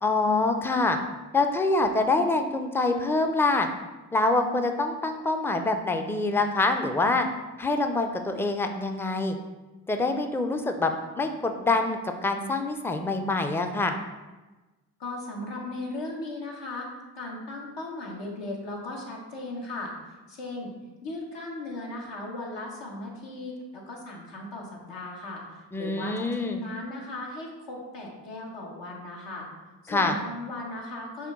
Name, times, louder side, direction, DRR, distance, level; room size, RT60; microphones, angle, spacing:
voice 1, 0.0-1.0 1.3-3.7 4.1-7.3 7.6-9.4 9.9-14.0 25.7-26.6 29.9-30.2, left 3 dB, 5° left, 6 dB, 0.4 m, -25 dB
voice 2, 15.0-16.9 17.1-19.9 20.3-20.7 21.0-29.5 29.8-31.3, left 2 dB, 70° left, -1 dB, 1.1 m, -37 dB
5.6 x 2.2 x 3.7 m, 1.2 s
supercardioid pair, 40°, 44 cm